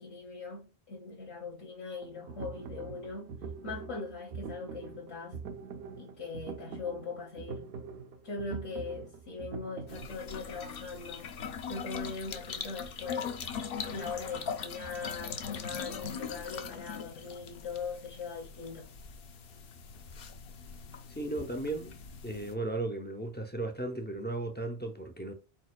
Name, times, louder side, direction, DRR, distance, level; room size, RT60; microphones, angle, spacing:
voice 1, 0.0-3.4 3.6-5.4 6.0-7.7 8.2-11.3 11.7-13.3 13.9-18.9, left 4 dB, 80° left, 1.4 m, -40 dB
sound 1, 2.0-10.1, right 5 dB, 75° right, 0.8 m, -44 dB
sound 2, 9.9-22.5, left 6 dB, 65° left, 0.8 m, -41 dB
voice 2, 21.1-21.9 22.2-25.3, right 2 dB, 15° left, 0.3 m, -35 dB
4.5 x 4.3 x 2.2 m
omnidirectional pair, 1.1 m